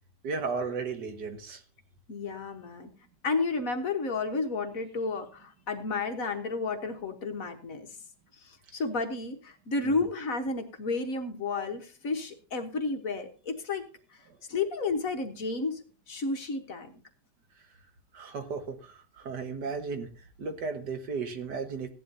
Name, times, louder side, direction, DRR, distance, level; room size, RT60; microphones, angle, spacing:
voice 1, 0.2-1.6 9.8-10.0 14.3-14.4 18.1-21.9, right 4 dB, 70° right, 6 dB, 2.1 m, -35 dB
voice 2, 2.1-2.9 3.2-7.9 8.4-13.8 14.5-15.8 16.1-16.9, left 3 dB, 55° left, 5 dB, 1.6 m, -32 dB
16.5 x 11.0 x 2.8 m, 0.36 s
omnidirectional pair, 1.9 m